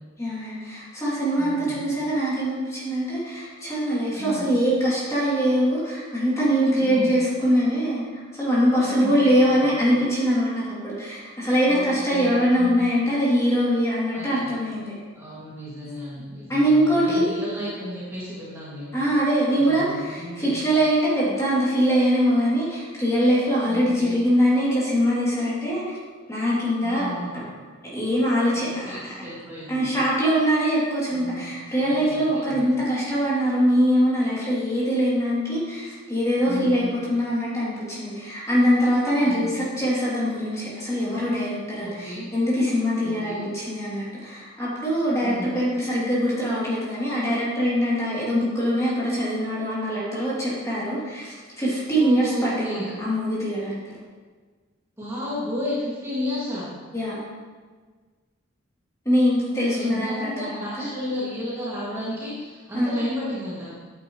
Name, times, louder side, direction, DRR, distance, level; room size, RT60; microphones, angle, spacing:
voice 1, 0.2-14.9 16.5-17.3 18.9-25.8 26.3-27.1 27.3-27.4 27.9-29.3 29.7-53.8 56.9-57.2 59.0-60.9 62.7-63.0, equal, 15° left, -8 dB, 2.9 m, -23 dB
voice 2, 1.4-1.8 4.1-4.5 6.8-7.2 8.8-9.7 11.6-12.9 14.1-14.6 15.1-19.0 19.5-20.5 23.7-24.2 26.8-27.4 28.5-29.9 31.1-32.6 36.5-36.9 39.2-39.6 41.8-42.3 43.0-43.4 45.2-45.5 52.0-52.9 55.0-56.7 59.5-63.7, left 1 dB, 15° right, -9 dB, 2.2 m, -33 dB
10.5 x 9.2 x 3.1 m, 1.5 s
head